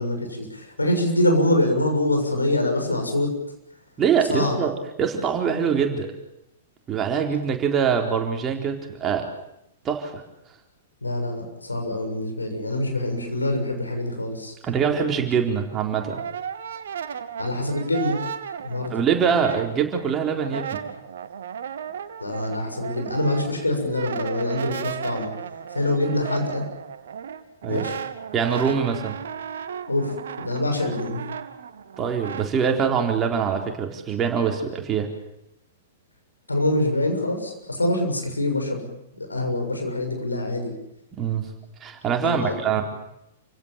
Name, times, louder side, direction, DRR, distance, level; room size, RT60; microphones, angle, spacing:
voice 1, 0.0-3.3 4.3-4.6 11.0-14.5 17.4-18.2 18.6-19.0 22.2-25.3 25.7-26.6 27.7-27.9 29.9-31.2 36.5-38.9 39.2-40.7 42.2-42.8, left 1 dB, 80° left, 4 dB, 6.8 m, -25 dB
voice 2, 4.0-6.1 6.9-9.3 9.8-10.2 14.6-16.2 18.9-20.8 27.6-27.9 28.3-29.2 32.0-35.1 41.2-41.5 41.8-42.8, right 7 dB, 20° right, 3 dB, 4.1 m, -24 dB
Brass instrument, 15.6-20.1 20.3-32.5, right 8 dB, 60° right, 1.9 m, -35 dB
29.0 x 17.0 x 9.0 m, 0.84 s
figure-of-eight pair, 105°, 0 cm